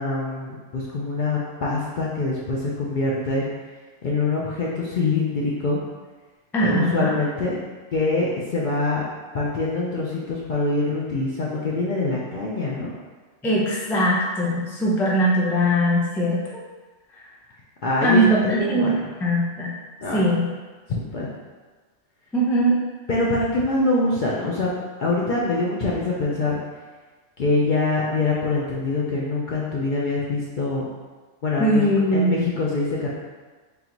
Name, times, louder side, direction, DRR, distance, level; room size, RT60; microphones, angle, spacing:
voice 1, 0.0-3.5 4.0-5.8 6.6-7.6 7.9-9.0 9.3-12.9 17.8-18.9 20.0-20.3 20.9-21.3 23.1-24.7 25.0-26.6 27.4-30.8 31.4-31.8 32.1-33.1, left 3 dB, 55° left, -5 dB, 0.6 m, -24 dB
voice 2, 6.5-7.1 13.4-16.4 17.2-17.3 18.0-18.9 19.2-19.8 20.1-20.5 22.3-22.8 31.6-32.5, equal, 5° left, -5 dB, 0.3 m, -20 dB
3.8 x 3.3 x 2.9 m, 1.3 s
omnidirectional pair, 1.3 m